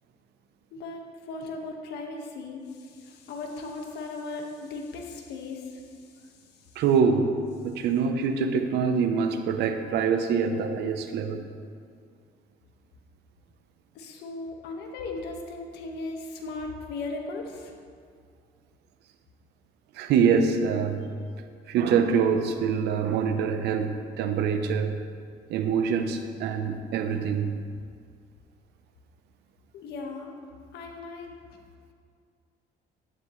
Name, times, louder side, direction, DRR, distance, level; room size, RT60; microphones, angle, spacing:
voice 1, 0.7-6.2 13.9-17.7 29.7-30.3 30.7-31.3, left 3 dB, 80° left, 1 dB, 1.6 m, -37 dB
voice 2, 6.8-7.4 7.6-11.4 19.9-21.1 21.7-25.0 25.5-27.6, right 6 dB, 80° right, 7 dB, 0.9 m, -25 dB
12.0 x 10.5 x 3.2 m, 2.1 s
cardioid pair, 110°, 17 cm